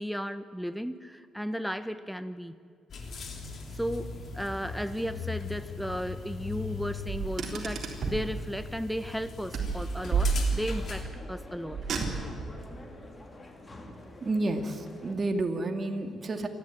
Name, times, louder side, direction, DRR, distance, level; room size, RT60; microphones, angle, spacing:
voice 1, 0.0-2.6 3.8-11.8 16.4-16.5, equal, ahead, 11 dB, 1.1 m, -35 dB
sound 1, 2.9-11.0, left 5 dB, 55° left, 3.6 m, -40 dB
Car, 7.1-8.3 9.5-10.8 11.7-12.5, right 4 dB, 55° right, 3.8 m, -30 dB
sound 2, 10.0-15.1, left 1 dB, 25° left, 2.9 m, -47 dB
voice 2, 14.2-16.5, right 2 dB, 35° right, 5 dB, 2.3 m, -30 dB
27.5 x 12.0 x 9.5 m, 2.2 s
cardioid pair, 90°, 0 cm